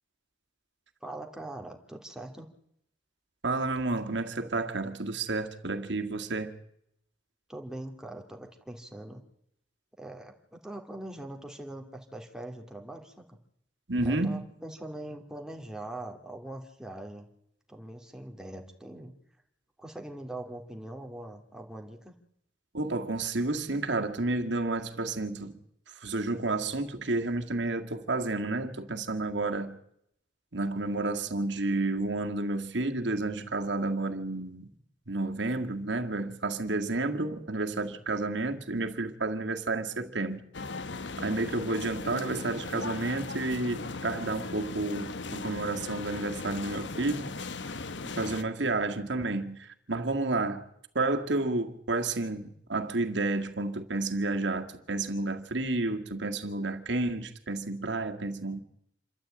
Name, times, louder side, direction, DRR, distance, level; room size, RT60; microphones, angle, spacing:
voice 1, 1.0-2.5 7.5-9.2 10.0-13.4 14.0-17.3 17.7-19.1 19.8-22.1 41.5-41.6, right 1 dB, 5° right, 2.7 m, -42 dB
voice 2, 3.4-6.5 13.9-14.5 22.7-25.5 25.9-29.8 30.5-34.7 35.1-40.4 41.2-47.3 48.2-50.7 51.0-58.6, right 2 dB, 70° right, 2.0 m, -31 dB
sound 1, 40.5-48.4, left 3 dB, 75° left, 1.1 m, -38 dB
27.5 x 13.0 x 8.8 m
head